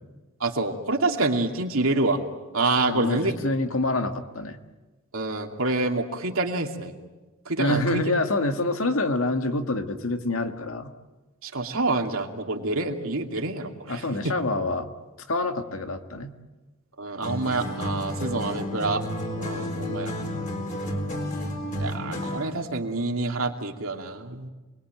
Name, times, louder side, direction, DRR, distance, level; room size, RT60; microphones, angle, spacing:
voice 1, 0.4-2.2 2.5-3.3 5.1-6.9 7.5-8.0 11.4-14.3 17.0-19.0 19.3-20.1 21.8-24.5, right 2 dB, 70° right, 3 dB, 2.6 m, -27 dB
voice 2, 2.8-4.6 7.6-10.9 13.9-14.9 15.3-16.3, left 2 dB, 70° left, 7 dB, 1.8 m, -26 dB
sound 1, 17.2-22.6, left 1 dB, 35° left, 4.2 m, -31 dB
28.5 x 21.5 x 9.1 m, 1.2 s
head